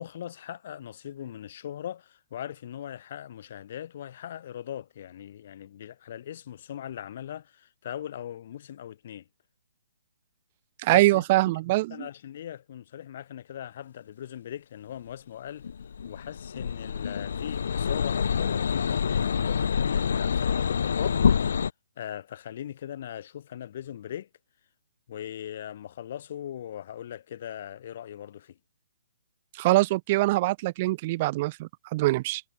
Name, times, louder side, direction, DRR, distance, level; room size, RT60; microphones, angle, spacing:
voice 1, 0.0-9.2 10.9-11.2 11.9-15.7 16.0-21.6 22.0-24.3 25.1-28.6, left 10 dB, 35° left, 6.2 m, -40 dB
voice 2, 10.8-12.1 29.6-32.4, right 19 dB, 25° right, 1.5 m, -23 dB
sound 1, 15.6-21.7, left 7 dB, 55° left, 1.5 m, -26 dB
hypercardioid pair, 175°, 0 cm